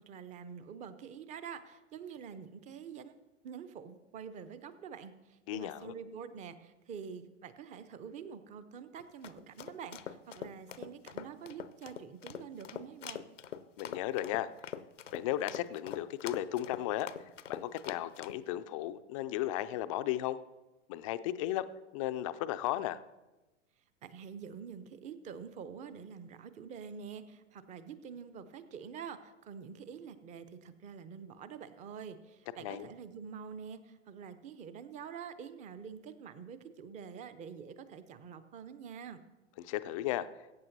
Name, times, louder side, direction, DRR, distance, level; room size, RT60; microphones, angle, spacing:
voice 1, 0.0-3.1 3.4-13.2 24.0-39.2, right 7 dB, 20° right, 12 dB, 0.6 m, -46 dB
voice 2, 5.5-5.9 13.8-14.5 15.1-17.1 17.5-20.4 20.9-21.7 21.9-23.0 32.6-32.9 39.6-40.3, left 14 dB, 30° left, 12 dB, 0.4 m, -35 dB
sound 1, 9.0-18.4, left 8 dB, 75° left, 0.7 m, -44 dB
21.5 x 8.8 x 2.7 m, 1.1 s
figure-of-eight pair, 100°, 37 cm